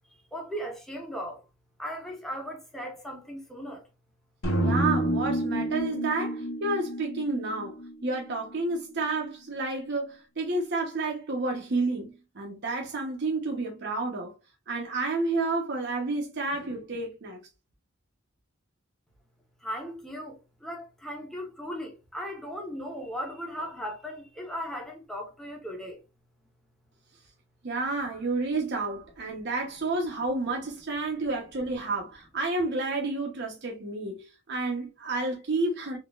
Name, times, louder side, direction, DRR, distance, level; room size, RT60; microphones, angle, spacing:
voice 1, 0.1-1.4 1.8-3.9 19.6-26.0, equal, ahead, 1.0 m, -37 dB
sound 1, 4.4-8.6, right 1 dB, 85° left, 1.4 m, -29 dB
voice 2, 4.6-14.3 14.7-17.4 27.6-36.0, right 3 dB, 55° right, 0.8 m, -30 dB
3.9 x 2.8 x 2.3 m
head